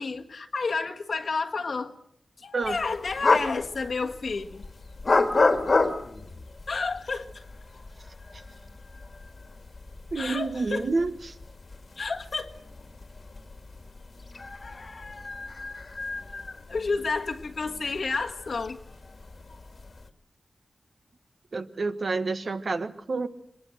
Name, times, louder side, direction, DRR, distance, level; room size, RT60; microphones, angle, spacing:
voice 1, 0.0-1.9 2.4-4.6 6.7-7.4 10.2-10.9 12.0-12.6 16.7-18.8, left 4 dB, 70° left, 3 dB, 1.7 m, -30 dB
sound 1, 2.6-20.1, left 3 dB, 50° left, 1.9 m, -31 dB
voice 2, 10.1-11.3 21.5-23.3, right 3 dB, 60° right, 9 dB, 1.4 m, -29 dB
24.0 x 20.0 x 8.0 m, 0.70 s
wide cardioid pair, 90°, 0 cm